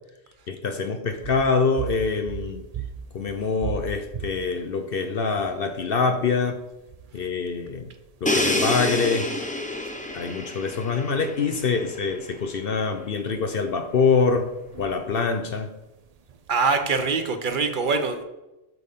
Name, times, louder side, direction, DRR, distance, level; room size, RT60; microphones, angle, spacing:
voice 1, 0.5-2.6 3.1-6.6 7.1-7.9 8.2-9.3 10.1-14.5 14.8-15.8, left 4 dB, 55° left, 0.7 m, -25 dB
sound 1, 1.1-17.0, right 8 dB, 60° right, 0.4 m, -41 dB
Crash cymbal, 8.3-12.1, left 1 dB, 10° left, 0.6 m, -28 dB
voice 2, 16.5-18.2, right 4 dB, 45° right, 1.0 m, -23 dB
7.9 x 7.1 x 3.6 m
omnidirectional pair, 1.3 m